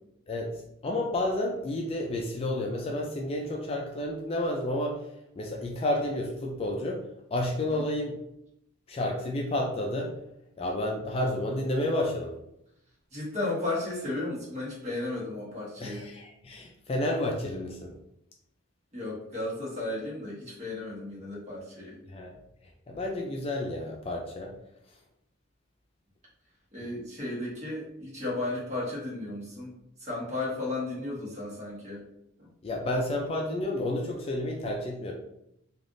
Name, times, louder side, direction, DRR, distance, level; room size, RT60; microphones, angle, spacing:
voice 1, 0.8-5.1 5.4-7.0 7.3-8.2 8.9-10.1 10.6-12.3 15.8-17.9 22.1-22.3 22.9-24.5 26.8-26.9 32.6-35.1, left 1 dB, 30° left, 0 dB, 0.3 m, -30 dB
voice 2, 13.1-16.1 18.9-22.0 26.7-29.7 30.0-32.0 32.4-32.5, left 2 dB, 35° right, -5 dB, 1.2 m, -34 dB
3.3 x 2.4 x 2.5 m, 0.80 s
head